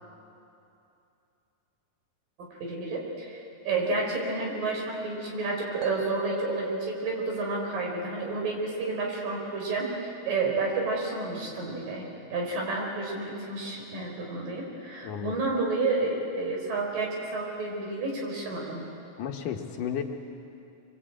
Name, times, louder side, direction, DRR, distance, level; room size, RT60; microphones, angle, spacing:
voice 1, 2.6-3.4 3.6-9.9 10.3-18.8, right 3 dB, 65° right, 0 dB, 6.3 m, -30 dB
sound 1, 5.8-9.9, equal, 45° right, 2.0 m, -40 dB
voice 2, 15.0-15.4 19.2-20.0, left 8 dB, 70° left, 4 dB, 2.6 m, -33 dB
26.0 x 23.5 x 8.8 m, 2.8 s
omnidirectional pair, 4.2 m